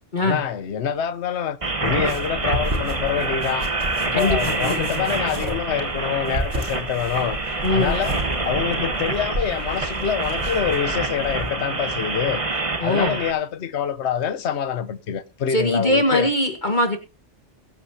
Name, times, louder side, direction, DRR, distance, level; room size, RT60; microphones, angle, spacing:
voice 1, 0.2-3.7 4.0-8.2 8.4-12.4 12.8-16.3, left 8 dB, 70° left, 1.2 m, -26 dB
sound 1, 1.6-13.3, right 3 dB, 30° right, 1.3 m, -27 dB
sound 2, 1.8-11.5, equal, 60° right, 4.4 m, -32 dB
voice 2, 4.1-5.1 7.6-8.0 12.8-13.2 15.5-17.0, left 1 dB, 40° left, 1.9 m, -22 dB
22.0 x 9.0 x 2.8 m
omnidirectional pair, 1.2 m